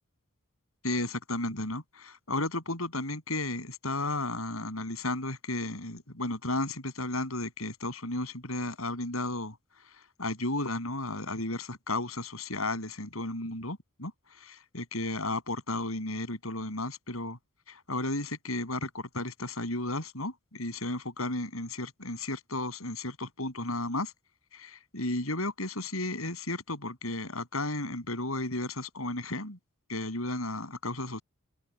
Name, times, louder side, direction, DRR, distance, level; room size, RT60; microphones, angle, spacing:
voice 1, 0.8-9.5 10.2-14.1 14.4-17.4 17.7-24.1 24.5-29.6 29.9-31.2, left 2 dB, 75° left, 8.0 m, -33 dB
open air
head